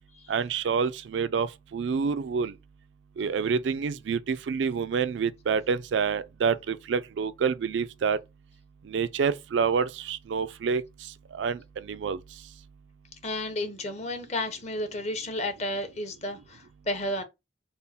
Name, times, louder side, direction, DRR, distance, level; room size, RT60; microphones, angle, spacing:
voice 1, 0.3-2.5 3.2-8.2 8.9-10.8 11.3-11.6 11.9-12.2, right 6 dB, 85° right, 0.4 m, -27 dB
voice 2, 13.2-17.2, left 1 dB, 40° left, 0.7 m, -32 dB
3.6 x 2.1 x 4.1 m
head